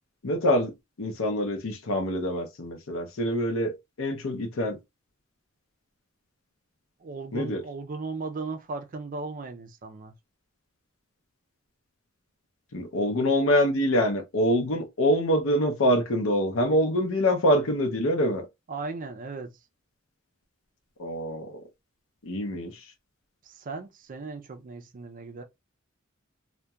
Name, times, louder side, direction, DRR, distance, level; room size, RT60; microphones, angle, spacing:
voice 1, 0.2-0.7 1.0-4.8 7.3-7.6 12.7-18.5 21.0-21.6 22.2-22.9, equal, 85° left, 0.6 m, -25 dB
voice 2, 7.0-10.1 18.7-19.6 23.4-25.4, right 3 dB, 40° right, 0.4 m, -37 dB
2.7 x 2.1 x 2.2 m
head